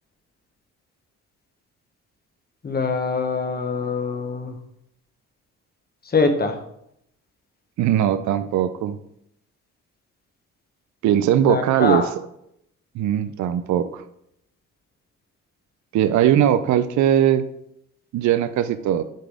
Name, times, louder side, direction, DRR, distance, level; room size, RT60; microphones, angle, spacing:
voice 1, 2.6-4.6 6.0-6.6 11.4-12.1, left 4 dB, 30° left, 6 dB, 1.1 m, -23 dB
voice 2, 7.8-9.0 11.0-12.0 12.9-14.0 15.9-17.5 18.1-19.0, right 10 dB, 70° right, 11 dB, 0.5 m, -20 dB
6.6 x 3.9 x 4.8 m, 0.76 s
cardioid pair, 90°, 30 cm